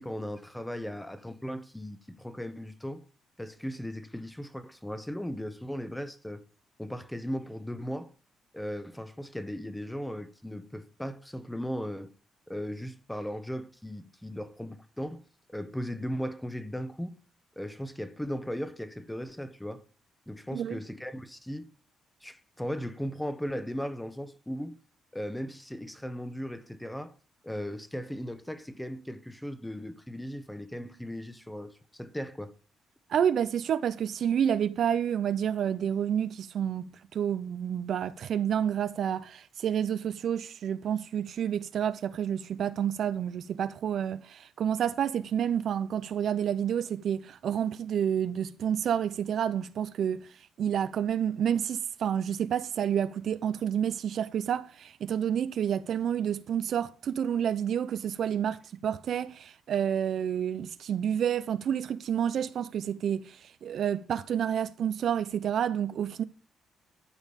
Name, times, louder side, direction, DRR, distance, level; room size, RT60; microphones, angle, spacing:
voice 1, 0.0-3.0 3.4-6.4 6.8-8.1 8.5-12.1 12.5-15.2 15.5-17.2 17.6-19.8 20.3-21.7 22.2-24.8 25.1-27.1 27.4-32.5, equal, 5° left, 1.1 m, -37 dB
voice 2, 33.1-50.3 50.6-66.2, right 9 dB, 65° right, 0.6 m, -29 dB
12.5 x 5.3 x 5.2 m
cardioid pair, 90°, 0 cm